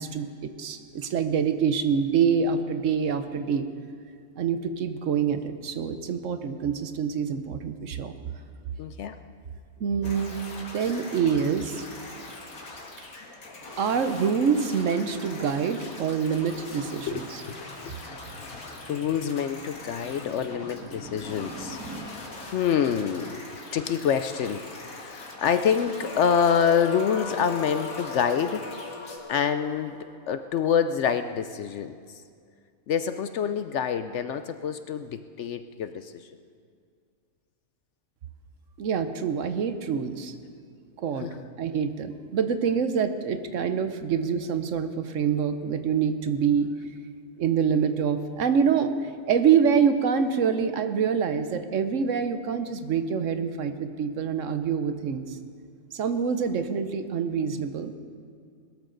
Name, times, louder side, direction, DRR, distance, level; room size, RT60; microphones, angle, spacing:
voice 1, 0.0-3.7 4.4-8.1 9.8-10.4 10.7-11.8 13.8-17.4 38.8-40.3 41.0-41.3 41.6-46.7 47.4-55.4 55.9-57.9, right 6 dB, 65° right, 9 dB, 1.1 m, -26 dB
voice 2, 8.8-9.2 17.1-17.9 18.4-18.5 18.9-21.8 22.2-22.3 22.5-23.4 23.7-28.6 29.3-30.0 30.3-32.0 32.9-36.3 41.2-41.4, left 7 dB, 65° left, 10 dB, 0.8 m, -26 dB
sound 1, 10.0-29.2, left 2 dB, 90° left, 2.2 m, -42 dB
sound 2, 17.3-22.1, right 2 dB, 10° right, 1.4 m, -46 dB
sound 3, 26.0-31.2, left 4 dB, 30° left, 0.6 m, -38 dB
21.0 x 13.0 x 3.9 m, 2.2 s
omnidirectional pair, 1.5 m